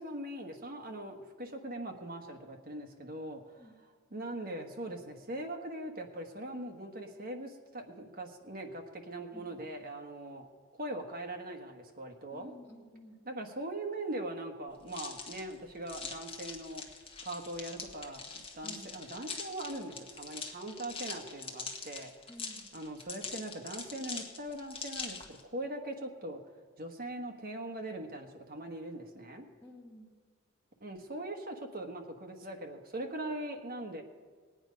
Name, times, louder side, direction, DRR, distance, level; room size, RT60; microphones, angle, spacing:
voice 1, 0.0-3.7 4.1-10.5 10.7-12.5 13.2-16.8 17.2-22.1 22.7-26.4 26.8-29.5 30.8-34.0, right 1 dB, 45° right, 4 dB, 1.4 m, -41 dB
voice 2, 9.3-9.7 12.3-13.2 18.6-19.0 22.3-22.7 29.6-30.1, equal, 10° left, -5 dB, 2.3 m, -52 dB
sound 1, 14.9-25.4, left 4 dB, 25° left, 1.2 m, -43 dB
19.0 x 9.0 x 5.2 m, 1.6 s
head